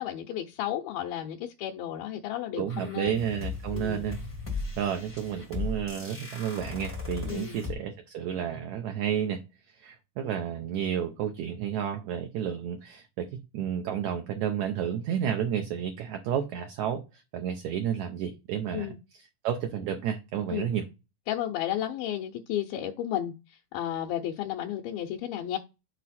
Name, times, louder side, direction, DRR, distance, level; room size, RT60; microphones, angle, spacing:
voice 1, 0.0-3.2 3.7-4.1 7.3-7.6 18.7-19.0 20.5-20.7 21.3-23.3 23.7-25.6, left 11 dB, 80° left, 2.4 m, -33 dB
voice 2, 2.6-4.2 4.8-9.4 9.8-20.9, right 9 dB, 85° right, 1.6 m, -31 dB
sound 1, 2.7-7.7, left 4 dB, 25° left, 0.4 m, -37 dB
6.5 x 4.2 x 4.2 m
omnidirectional pair, 4.2 m